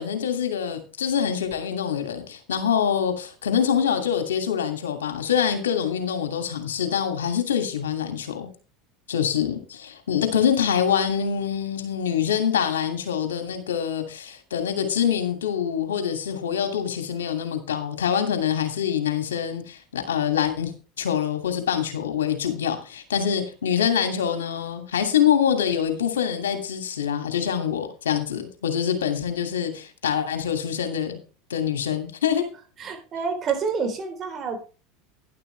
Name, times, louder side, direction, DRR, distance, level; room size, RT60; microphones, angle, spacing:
voice 1, 0.0-8.5 9.1-20.7 21.0-31.2 31.5-32.4, left 8 dB, 90° left, 2.6 m, -25 dB
voice 2, 32.8-34.6, right 5 dB, 40° right, 4.1 m, -28 dB
11.5 x 11.0 x 3.4 m
hypercardioid pair, 90°, 0 cm